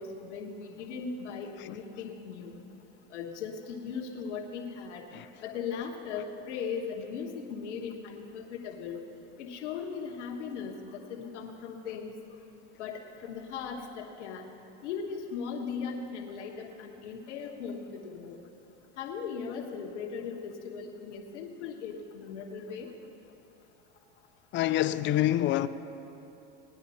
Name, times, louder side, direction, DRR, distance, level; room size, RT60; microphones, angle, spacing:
voice 1, 0.0-2.6 3.1-5.0 5.4-9.0 9.4-12.1 12.8-14.4 14.8-18.4 19.0-22.9, left 6 dB, 85° left, 1.4 m, -38 dB
voice 2, 24.5-25.7, left 13 dB, 35° left, 0.4 m, -26 dB
18.0 x 9.9 x 4.2 m
supercardioid pair, 110°, 35 cm